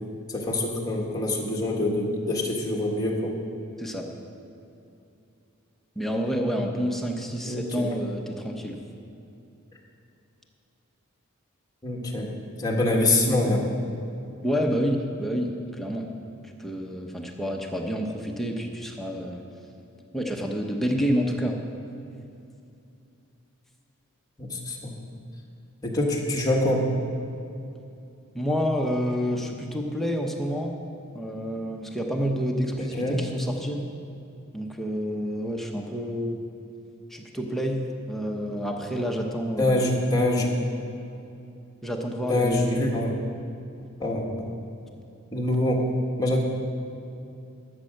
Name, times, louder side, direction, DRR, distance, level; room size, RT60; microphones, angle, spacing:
voice 1, 0.3-3.3 7.4-7.9 11.8-12.3 12.6-13.6 24.4-24.9 25.8-26.8 32.8-33.2 39.6-40.5 42.3-43.1 44.0-44.5 45.3-45.8 46.2-46.4, left 1 dB, 20° left, -2 dB, 1.6 m, -25 dB
voice 2, 6.0-8.8 14.4-16.1 16.6-19.4 20.1-21.6 28.3-30.7 31.1-33.8 34.5-36.4 37.1-39.8 41.8-43.1, equal, ahead, 1 dB, 0.8 m, -28 dB
13.0 x 7.5 x 6.5 m, 2.7 s
head